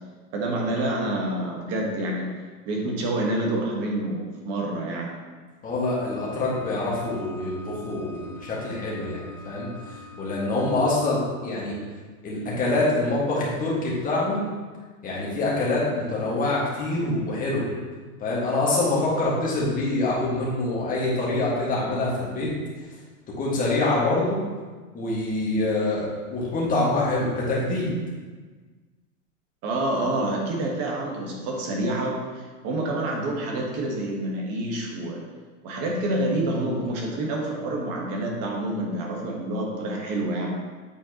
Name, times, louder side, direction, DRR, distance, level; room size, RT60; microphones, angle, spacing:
voice 1, 0.3-2.3 2.6-5.1 29.6-35.2 35.6-40.5, right 1 dB, 30° right, -1 dB, 1.4 m, -27 dB
voice 2, 5.6-11.7 12.2-14.4 15.0-17.7 18.2-22.5 23.4-24.4 24.9-27.9, left 2 dB, 15° left, -5 dB, 1.7 m, -25 dB
sound 1, 6.1-11.1, left 3 dB, 50° left, 1.5 m, -44 dB
8.4 x 4.3 x 2.9 m, 1.4 s
hypercardioid pair, 140°, 47 cm